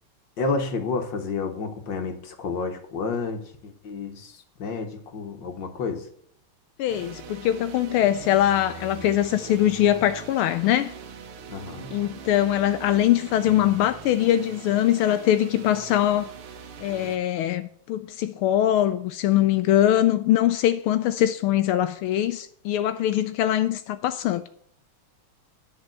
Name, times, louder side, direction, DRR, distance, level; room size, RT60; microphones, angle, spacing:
voice 1, 0.4-6.1 11.5-11.9, left 4 dB, 60° left, 1.9 m, -30 dB
voice 2, 6.8-10.9 11.9-16.3 16.8-24.4, left 12 dB, 80° left, 1.5 m, -22 dB
sound 1, 6.9-17.2, right 6 dB, 75° right, 1.9 m, -42 dB
10.5 x 4.8 x 7.6 m
omnidirectional pair, 2.4 m